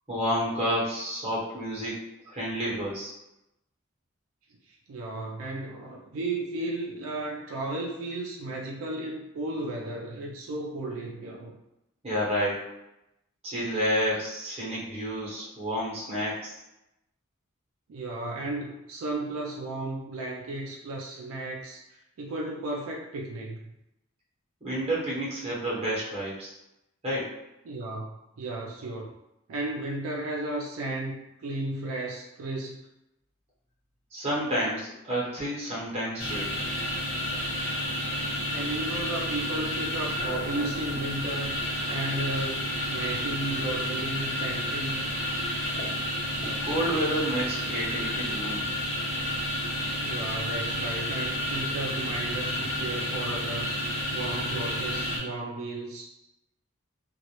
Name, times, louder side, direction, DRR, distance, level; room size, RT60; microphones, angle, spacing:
voice 1, 0.1-2.0 2.3-3.1 12.0-12.6 13.4-16.6 24.6-26.5 27.0-27.4 34.1-36.5 46.6-48.7, equal, 30° right, -6 dB, 0.9 m, -30 dB
voice 2, 4.7-11.6 17.9-21.8 22.2-23.8 27.7-29.1 29.5-32.8 38.5-41.6 41.9-45.1 50.0-53.8 54.1-56.1, right 2 dB, 85° right, -2 dB, 0.4 m, -34 dB
sound 1, 36.2-55.2, equal, 45° left, 1.0 m, -31 dB
2.2 x 2.0 x 2.8 m, 0.88 s
head